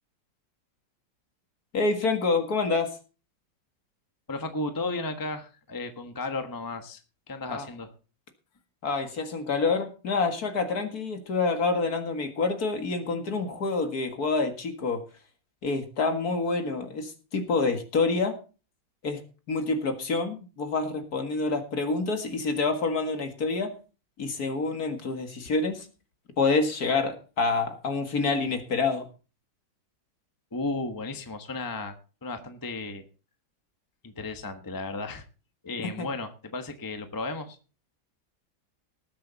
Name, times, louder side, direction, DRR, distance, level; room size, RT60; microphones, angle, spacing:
voice 1, 1.7-2.9 7.5-7.7 8.8-15.0 15.6-18.4 19.0-19.2 19.5-23.7 24.2-25.9 26.4-29.1 35.8-36.1, left 3 dB, 55° left, 7 dB, 2.2 m, -27 dB
voice 2, 4.3-7.0 7.3-7.9 30.5-32.0 32.2-33.0 34.0-35.2 35.6-37.6, left 2 dB, 15° left, 7 dB, 1.1 m, -34 dB
19.5 x 7.8 x 4.0 m, 0.34 s
omnidirectional pair, 2.0 m